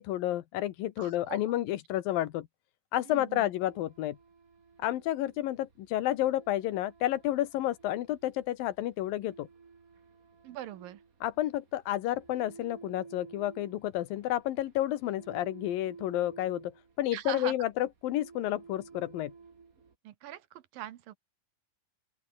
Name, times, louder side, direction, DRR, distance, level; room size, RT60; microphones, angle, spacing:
voice 1, 0.0-2.5 2.9-4.2 4.8-9.5 11.2-16.7 17.0-19.3, left 14 dB, 80° left, 2.9 m, -31 dB
voice 2, 1.0-1.4 3.0-3.5 10.4-11.0 17.1-17.5 20.0-21.2, right 13 dB, 80° right, 2.9 m, -41 dB
sound 1, 3.3-19.9, right 5 dB, 30° right, 1.8 m, -54 dB
open air
omnidirectional pair, 4.1 m